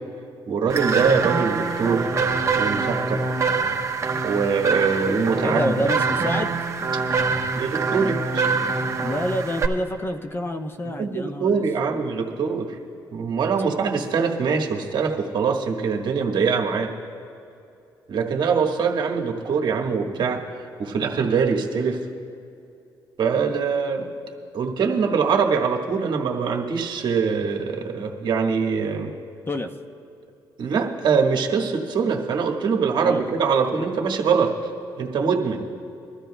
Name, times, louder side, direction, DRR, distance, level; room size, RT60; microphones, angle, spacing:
voice 1, 0.5-2.1 2.6-3.2 4.2-5.7 7.6-8.4 10.8-12.8 13.1-16.9 18.1-20.4 20.8-22.0 23.2-24.1 24.5-29.2 30.6-34.7 35.0-35.7, right 5 dB, 60° right, 1 dB, 1.4 m, -23 dB
sound 1, 0.7-9.7, right 4 dB, 35° right, 1.0 m, -24 dB
voice 2, 5.4-6.6 7.9-8.1 9.0-11.6 11.9-12.0 29.5-29.7 32.9-33.2, left 1 dB, 25° left, 7 dB, 0.7 m, -28 dB
23.5 x 13.0 x 2.2 m, 2.6 s
cardioid pair, 85°, 9 cm